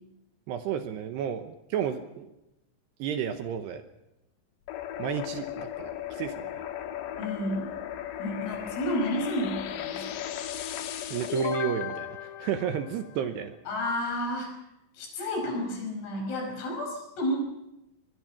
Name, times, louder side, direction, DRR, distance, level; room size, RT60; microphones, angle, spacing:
voice 1, 0.5-2.3 3.0-3.8 5.0-6.6 11.1-13.6, right 9 dB, 75° right, 8 dB, 2.7 m, -32 dB
sound 1, 4.7-13.3, left 10 dB, 65° left, 3.2 m, -36 dB
voice 2, 7.2-7.7 8.2-10.2 13.7-14.5 15.0-17.4, left 1 dB, 85° left, 3 dB, 8.0 m, -31 dB
24.0 x 21.0 x 6.0 m, 0.92 s
omnidirectional pair, 5.7 m